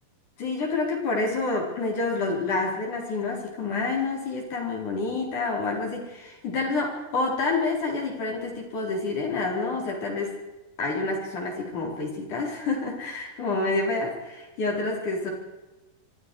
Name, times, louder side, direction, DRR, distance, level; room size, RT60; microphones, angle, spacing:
voice 1, 0.4-10.3 10.8-15.3, left 3 dB, 55° left, 0 dB, 5.9 m, -28 dB
27.0 x 24.0 x 4.8 m, 1.1 s
omnidirectional pair, 4.4 m